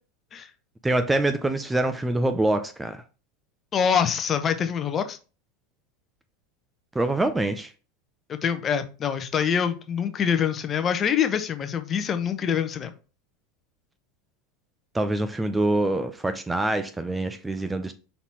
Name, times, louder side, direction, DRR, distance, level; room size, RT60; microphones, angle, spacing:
voice 1, 0.8-3.0 6.9-7.7 14.9-17.9, right 2 dB, 10° right, 0.6 m, -25 dB
voice 2, 3.7-5.2 8.3-12.9, left 7 dB, 30° left, 0.9 m, -25 dB
5.8 x 4.1 x 4.7 m
figure-of-eight pair, 80°, 0 cm